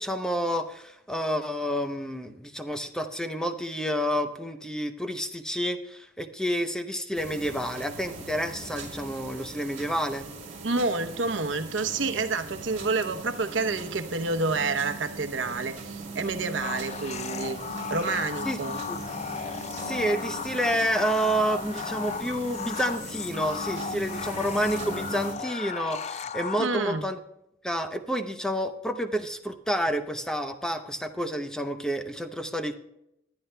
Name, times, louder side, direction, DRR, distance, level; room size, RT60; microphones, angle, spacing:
voice 1, 0.0-10.3 18.4-18.6 18.9-19.0 19.8-27.2 27.6-32.8, equal, 5° left, 7 dB, 0.7 m, -29 dB
sound 1, 7.1-25.4, right 3 dB, 40° right, 2.5 m, -40 dB
voice 2, 10.6-17.6 17.9-18.8 26.6-27.1, right 3 dB, 85° right, 9 dB, 0.9 m, -29 dB
sound 2, 16.6-27.0, left 7 dB, 35° left, 0.4 m, -36 dB
20.0 x 10.5 x 2.2 m, 0.81 s
head